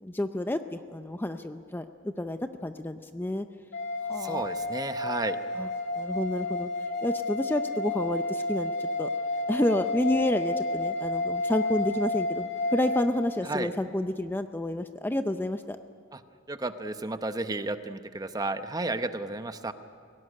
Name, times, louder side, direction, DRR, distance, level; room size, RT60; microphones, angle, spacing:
voice 1, 0.0-1.8 2.2-3.5 4.1-4.4 5.6-5.7 6.0-6.7 7.0-8.7 9.0-9.1 9.5-15.8, left 1 dB, 10° left, 8 dB, 0.5 m, -29 dB
sound 1, 3.7-13.1, left 2 dB, 60° left, 3.1 m, -31 dB
voice 2, 4.2-5.4 13.4-13.7 16.1-16.2 16.5-19.7, right 2 dB, 20° right, 9 dB, 0.8 m, -32 dB
23.0 x 17.5 x 9.9 m, 2.3 s
head